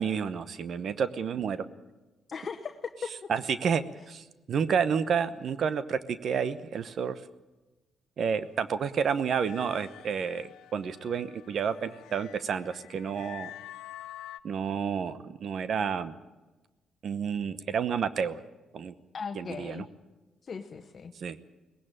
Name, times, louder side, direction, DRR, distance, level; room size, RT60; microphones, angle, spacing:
voice 1, 0.0-1.6 3.3-7.2 8.2-13.5 14.4-16.2 17.0-18.4 18.7-18.9 19.3-19.8 21.1-21.4, right 7 dB, 60° right, 13 dB, 0.9 m, -30 dB
voice 2, 2.3-3.1 19.1-19.9 20.4-21.1, left 5 dB, 45° left, 5 dB, 1.1 m, -38 dB
sound 1, 9.4-14.4, left 13 dB, 90° left, 0.6 m, -48 dB
19.0 x 16.0 x 8.9 m, 1.2 s
cardioid pair, 90°, 0 cm